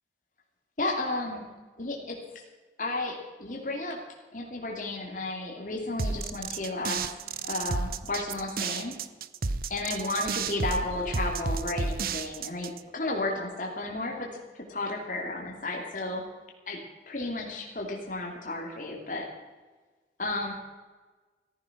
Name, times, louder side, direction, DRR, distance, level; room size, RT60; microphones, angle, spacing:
voice 1, 0.8-1.4 1.8-2.2 2.8-4.0 4.3-7.0 7.4-8.9 9.7-14.3 14.7-16.2 16.7-16.8 17.1-19.3 20.2-20.5, left 2 dB, 45° left, -1 dB, 2.7 m, -33 dB
sound 1, 6.0-12.8, right 4 dB, 55° right, 0.7 m, -32 dB
15.0 x 14.0 x 5.9 m, 1.3 s
head